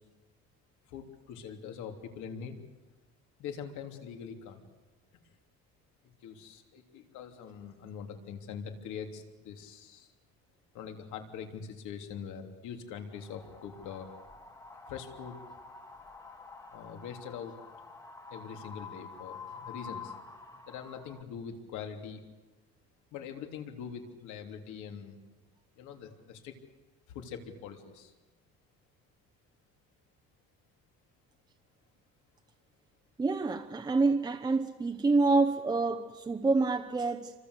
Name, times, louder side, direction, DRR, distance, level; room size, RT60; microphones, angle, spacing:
voice 1, 0.9-2.6 3.4-4.6 6.2-10.1 10.7-14.1 14.9-15.4 16.7-17.6 18.3-20.1 20.7-22.2 23.1-25.2 25.7-26.5 27.1-28.1, left 7 dB, 80° left, 3.4 m, -43 dB
Wind, 13.1-21.2, left 5 dB, 10° left, 1.4 m, -48 dB
voice 2, 33.2-37.3, right 3 dB, 15° right, 0.8 m, -27 dB
29.0 x 25.0 x 8.3 m
cardioid pair, 180°, 29 cm